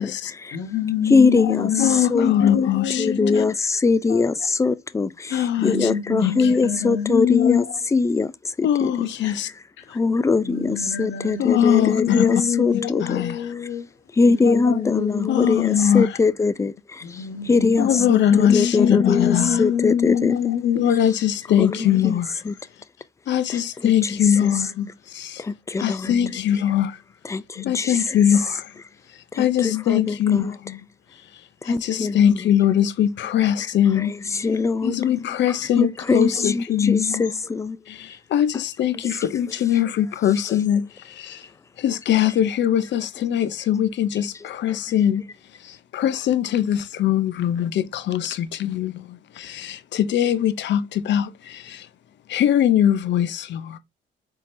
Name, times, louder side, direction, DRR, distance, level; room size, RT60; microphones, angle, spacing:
voice 1, 0.0-0.3 1.4-3.4 4.1-4.2 5.3-5.9 6.2-6.6 7.4-7.5 8.6-9.5 9.9-10.0 11.4-12.4 12.7-13.5 14.4-14.8 15.3-16.2 17.5-19.6 20.7-22.4 23.3-25.4 25.8-27.0 27.6-28.7 29.4-30.9 31.6-37.4 37.9-41.4 41.8-45.2 45.6-51.9 52.3-53.8, left 10 dB, 65° left, 0.6 m, -22 dB
voice 2, 0.5-3.5 5.6-7.7 9.8-9.9 10.4-13.9 14.2-15.5 17.0-21.0 21.7-21.8, left 8 dB, 80° left, 1.1 m, -25 dB
voice 3, 1.1-1.7 2.1-2.3 3.0-7.6 7.9-8.3 8.6-8.9 10.0-13.2 14.2-16.7 17.5-20.3 21.6-21.7 22.0-22.2 22.5-22.6 24.4-24.5 25.4-26.1 27.3-27.9 29.3-30.5 31.7-32.3 34.4-35.0 35.8-37.8, left 4 dB, 15° left, 0.4 m, -22 dB
4.2 x 3.7 x 2.6 m
cardioid pair, 90°, 20 cm